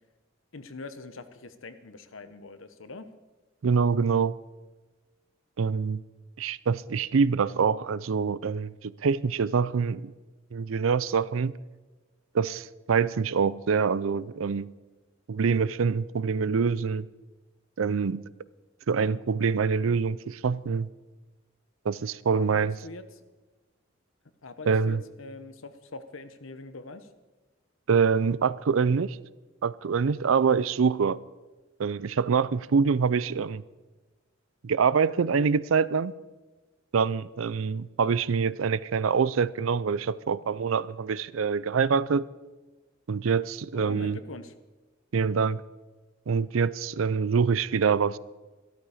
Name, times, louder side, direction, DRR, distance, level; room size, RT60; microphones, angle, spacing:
voice 1, 0.5-3.1 22.3-23.2 24.4-27.1 43.7-44.5, left 3 dB, 75° left, 1.0 m, -43 dB
voice 2, 3.6-4.4 5.6-6.0 6.4-10.1 10.5-11.5 12.3-14.7 15.3-17.1 17.8-18.2 18.9-20.9 21.8-22.8 24.7-25.0 27.9-29.2 29.6-31.2 31.8-33.6 34.6-36.1 36.9-42.3 43.1-44.2 45.1-45.6 46.3-48.2, right 5 dB, 80° right, 0.5 m, -25 dB
14.0 x 12.5 x 5.0 m
head